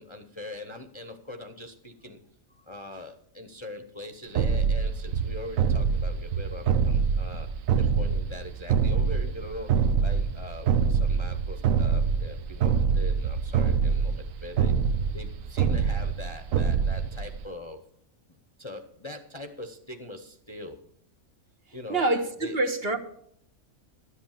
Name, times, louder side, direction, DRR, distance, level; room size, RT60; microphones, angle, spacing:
voice 1, 0.0-2.2 2.5-7.5 7.7-9.7 10.0-14.7 15.1-17.8 18.6-20.8 21.7-22.0 22.4-22.6, left 1 dB, 25° left, 0.8 m, -42 dB
sound 1, 4.4-17.5, right 6 dB, 70° right, 1.1 m, -25 dB
voice 2, 21.9-23.0, right 2 dB, 45° right, 1.3 m, -26 dB
12.5 x 7.9 x 7.3 m
omnidirectional pair, 1.5 m